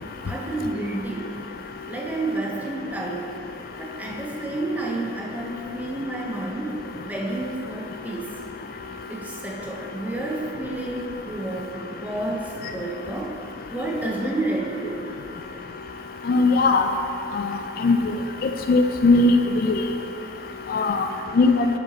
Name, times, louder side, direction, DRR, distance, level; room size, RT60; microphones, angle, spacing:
voice 1, 0.3-1.4 1.9-3.3 3.8-8.3 9.1-13.3 13.7-15.1, right 2 dB, 10° right, -2 dB, 0.7 m, -30 dB
voice 2, 16.3-16.9 17.8-18.0 18.4-19.3 19.6-19.8 20.7-21.1 21.4-21.6, left 3 dB, 50° left, 6 dB, 0.3 m, -18 dB
6.9 x 6.7 x 4.0 m, 2.7 s
head